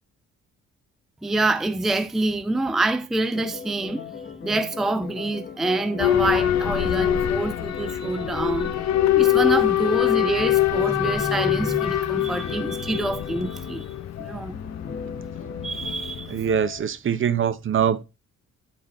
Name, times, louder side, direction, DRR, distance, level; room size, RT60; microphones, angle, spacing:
voice 1, 1.2-4.1 4.4-8.7 9.1-13.9 14.2-14.6 15.6-16.4, right 2 dB, ahead, 0.4 m, -26 dB
sound 1, 3.3-16.8, left 6 dB, 35° left, 1.0 m, -38 dB
Boat Water vehicle / Alarm, 6.0-16.6, left 12 dB, 60° left, 0.9 m, -24 dB
voice 2, 16.3-18.0, right 8 dB, 40° right, 0.7 m, -23 dB
8.8 x 4.2 x 4.0 m
cardioid pair, 90°, 30 cm